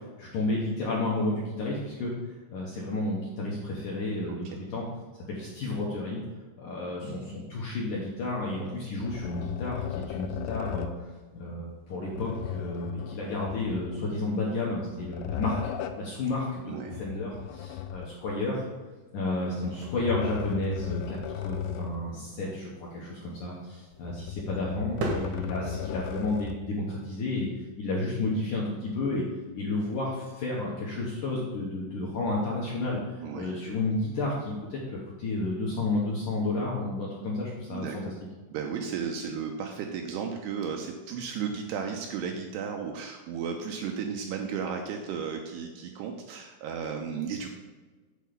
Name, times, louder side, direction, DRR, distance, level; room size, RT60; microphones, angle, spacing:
voice 1, 0.2-2.1 2.5-4.9 5.3-6.2 6.6-10.9 11.3-18.7 19.1-27.5 27.8-29.2 29.5-33.0 33.3-38.1, left 2 dB, 65° left, -4 dB, 2.0 m, -31 dB
sound 1, 9.0-11.0 12.1-14.2 14.8-16.1 16.9-18.4 19.6-22.1 22.5-22.6 23.9-26.7, left 9 dB, 85° left, 3.0 m, -36 dB
voice 2, 16.7-17.0 33.2-33.5 37.7-38.0 38.5-47.5, right 6 dB, 85° right, 3 dB, 2.5 m, -34 dB
sound 2, 19.3-26.1, right 2 dB, 70° right, 2.0 m, -41 dB
8.3 x 4.6 x 6.8 m, 1.3 s
omnidirectional pair, 5.3 m